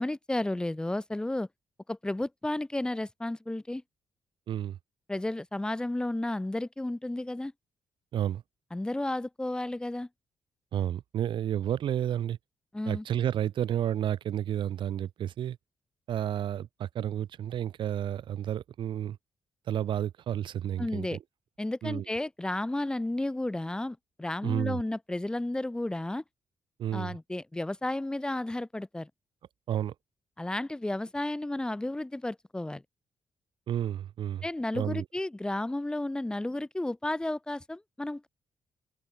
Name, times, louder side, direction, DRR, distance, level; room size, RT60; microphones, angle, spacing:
voice 1, 0.0-1.5 1.9-3.8 5.1-7.5 8.7-10.1 12.7-13.0 20.8-21.2 21.6-26.2 26.9-29.1 30.4-32.8 34.4-38.3, left 1 dB, 10° left, 0.8 m, -32 dB
voice 2, 4.5-4.8 8.1-8.4 10.7-12.4 12.9-15.6 16.1-19.2 19.7-21.2 21.8-22.0 24.4-24.8 26.8-27.2 29.7-29.9 33.7-34.4 34.7-35.0, right 10 dB, 80° right, 1.9 m, -31 dB
open air
cardioid pair, 115°, 8 cm